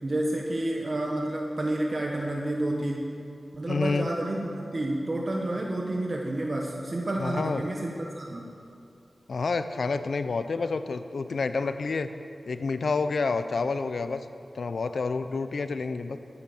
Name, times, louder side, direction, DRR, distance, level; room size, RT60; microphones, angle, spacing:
voice 1, 0.0-3.1 3.5-8.5, right 1 dB, 50° right, -1 dB, 1.3 m, -30 dB
voice 2, 3.7-4.1 7.2-7.7 9.3-12.1 12.5-14.3 14.5-16.2, left 4 dB, 80° left, 10 dB, 0.6 m, -29 dB
14.0 x 8.5 x 7.2 m, 2.6 s
cardioid pair, 55°, 0 cm